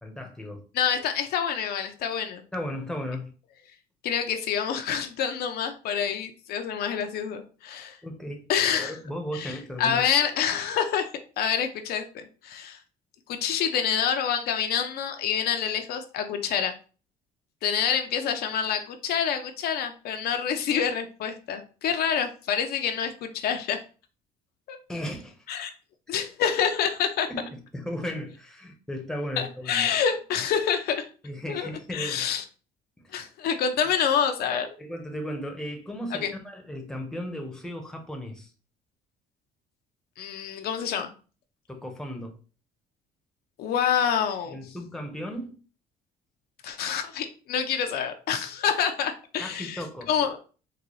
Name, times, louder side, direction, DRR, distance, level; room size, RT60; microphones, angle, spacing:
voice 1, 0.0-0.6 2.5-3.3 6.0-6.1 8.0-10.0 24.9-25.6 27.3-29.8 31.2-32.3 33.0-33.3 34.8-38.5 41.7-42.4 44.5-45.6 49.4-50.1, equal, 5° left, 0.8 m, -36 dB
voice 2, 0.7-2.4 4.0-8.0 8.5-8.9 9.3-11.1 11.4-12.8 13.3-16.7 17.6-23.8 24.7-24.8 25.5-25.7 26.1-27.3 29.4-31.1 31.5-32.4 33.1-34.7 36.2-36.3 40.2-41.1 43.6-44.6 46.6-50.4, left 8 dB, 70° left, 0.5 m, -27 dB
3.9 x 2.3 x 3.0 m
cardioid pair, 110°, 17 cm